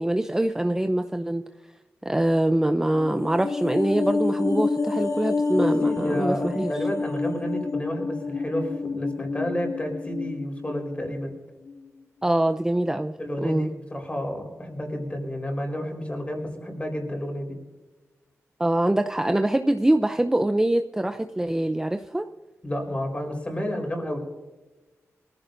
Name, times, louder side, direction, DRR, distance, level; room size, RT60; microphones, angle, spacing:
voice 1, 0.0-1.4 2.0-6.8 12.2-13.1 13.4-13.7 18.6-22.3, right 1 dB, 10° right, 7 dB, 0.6 m, -24 dB
sound 1, 2.9-11.4 11.7-11.8, left 3 dB, 85° left, 2.3 m, -28 dB
voice 2, 5.5-11.3 13.2-17.6 22.6-24.2, equal, 25° left, 3 dB, 4.3 m, -31 dB
24.0 x 15.0 x 2.6 m, 1.2 s
wide cardioid pair, 120°, 5 cm